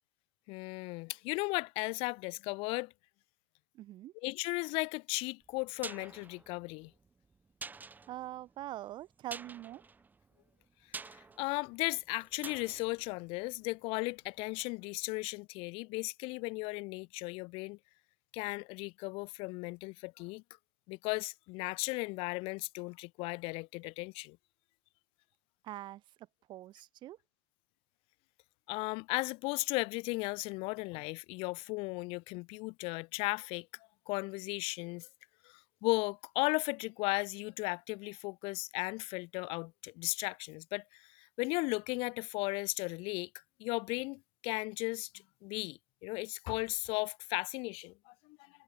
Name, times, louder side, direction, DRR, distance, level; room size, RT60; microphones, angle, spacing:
voice 1, 0.5-2.9 4.2-6.9 11.1-17.8 18.3-20.4 20.9-24.4 28.7-33.7 34.1-35.1 35.4-43.3 43.6-45.1 45.4-48.5, left 27 dB, 50° left, 2.7 m, -36 dB
voice 2, 3.7-4.1 8.1-9.8 25.6-27.2, right 14 dB, 40° right, 4.2 m, -44 dB
sound 1, 5.4-14.3 14.6-14.7, right 4 dB, 15° right, 2.0 m, -49 dB
hypercardioid pair, 100°, 12 cm